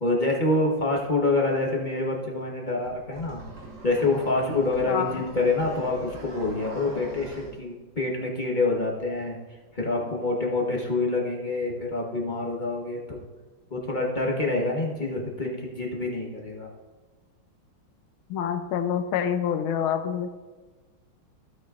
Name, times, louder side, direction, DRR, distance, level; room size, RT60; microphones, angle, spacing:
voice 1, 0.0-3.4 3.8-9.4 9.7-13.2 13.7-16.7, left 2 dB, 30° left, -2 dB, 1.0 m, -26 dB
sound 1, 2.8-7.5, right 1 dB, 90° right, 3.4 m, -41 dB
voice 2, 4.9-5.2 18.3-20.3, left 8 dB, 80° left, 8 dB, 1.5 m, -27 dB
15.5 x 6.2 x 2.5 m, 1.3 s
omnidirectional pair, 2.3 m